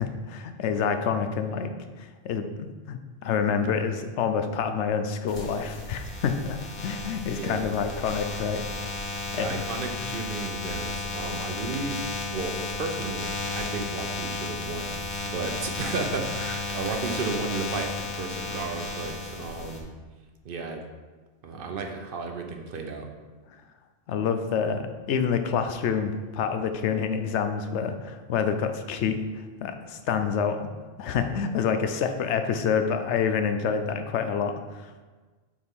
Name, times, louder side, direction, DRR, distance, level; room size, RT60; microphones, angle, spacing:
voice 1, 0.0-1.7 2.0-6.6 6.8-8.6 9.1-9.6 24.1-30.7 31.0-34.9, left 6 dB, 85° left, 8 dB, 0.9 m, -27 dB
sound 1, 5.3-19.8, left 3 dB, 45° left, 1.0 m, -34 dB
voice 2, 7.4-7.7 9.1-12.0 12.3-19.9 20.4-20.9 21.4-23.1, right 4 dB, 55° right, 4 dB, 0.8 m, -34 dB
7.1 x 4.2 x 3.6 m, 1.3 s
omnidirectional pair, 1.2 m